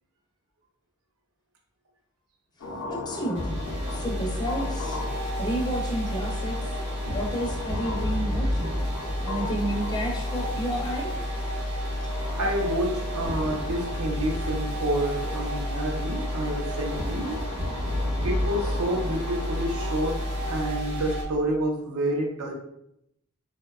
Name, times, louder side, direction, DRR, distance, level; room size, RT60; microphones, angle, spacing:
sound 1, 2.6-20.7, left 2 dB, 85° left, 0.4 m, -39 dB
voice 1, 2.9-3.6 3.9-5.0 5.4-6.6 7.1-8.8 9.2-11.1, right 1 dB, 20° left, -1 dB, 0.4 m, -31 dB
sound 2, 3.3-21.2, equal, 55° right, 0.8 m, -30 dB
voice 2, 12.4-17.4 18.2-22.5, right 1 dB, 80° right, 1 dB, 0.5 m, -29 dB
2.6 x 2.1 x 2.3 m, 0.79 s
head